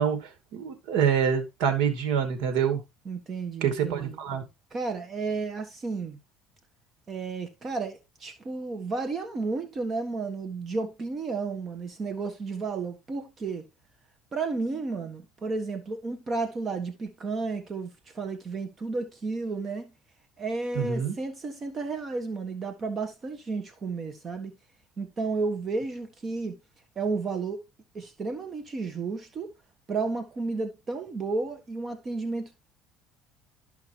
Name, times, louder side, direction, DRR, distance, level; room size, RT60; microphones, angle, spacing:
voice 1, 0.0-2.8 3.6-4.4 20.7-21.1, right 7 dB, 80° right, 2.6 m, -26 dB
voice 2, 3.0-4.2 4.7-6.2 7.1-13.6 14.3-17.9 18.1-19.9 20.4-24.5 25.0-26.6 26.9-27.6 27.9-29.5 29.9-32.6, right 4 dB, 30° right, 1.4 m, -32 dB
13.0 x 5.8 x 3.0 m
cardioid pair, 130°, 0 cm